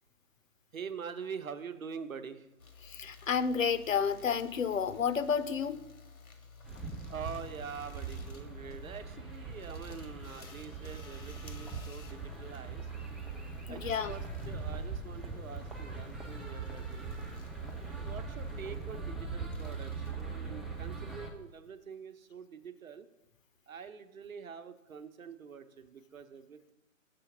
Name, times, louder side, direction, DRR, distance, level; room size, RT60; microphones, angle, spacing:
voice 1, 0.7-2.5 7.1-12.9 13.7-17.2 17.7-23.1 23.7-26.7, right 6 dB, 80° right, 10 dB, 0.9 m, -45 dB
sound 1, 2.6-21.6, left 4 dB, 90° left, 1.2 m, -55 dB
voice 2, 2.8-5.8 13.7-14.1, left 6 dB, 70° left, 13 dB, 0.6 m, -31 dB
sound 2, 6.6-21.3, right 4 dB, ahead, 0.4 m, -41 dB
7.0 x 4.0 x 5.7 m, 0.91 s
hypercardioid pair, 180°, 41 cm